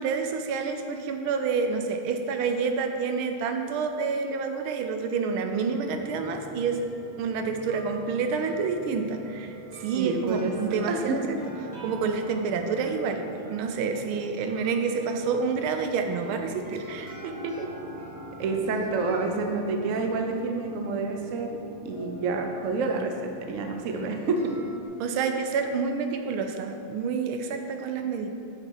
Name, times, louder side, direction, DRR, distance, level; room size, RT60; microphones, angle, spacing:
voice 1, 0.0-6.8 7.2-11.4 11.8-17.7 25.0-28.3, right 5 dB, 85° right, 5 dB, 1.5 m, -28 dB
sound 1, 5.9-24.9, right 1 dB, 20° right, 1.4 m, -44 dB
voice 2, 10.0-11.2 18.4-21.6 21.8-24.6, right 3 dB, 60° right, 3 dB, 0.8 m, -28 dB
6.9 x 6.8 x 4.6 m, 2.4 s
omnidirectional pair, 2.2 m